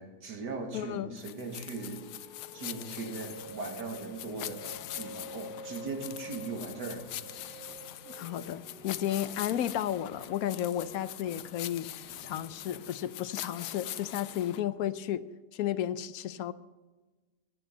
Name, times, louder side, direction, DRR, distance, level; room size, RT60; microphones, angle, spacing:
voice 1, 0.0-2.1 2.5-4.6 5.0-7.6, right 3 dB, 85° right, 3 dB, 2.6 m, -39 dB
voice 2, 0.7-1.2 8.1-11.9 12.2-15.2 15.5-16.5, left 11 dB, 65° left, 14 dB, 1.0 m, -33 dB
sound 1, 1.1-13.9, right 1 dB, 35° right, 1.6 m, -50 dB
sound 2, 1.2-14.6, left 13 dB, 85° left, 1.2 m, -43 dB
sound 3, 3.4-13.5, right 1 dB, 65° right, 5.6 m, -56 dB
16.0 x 11.0 x 5.4 m, 1.2 s
omnidirectional pair, 1.8 m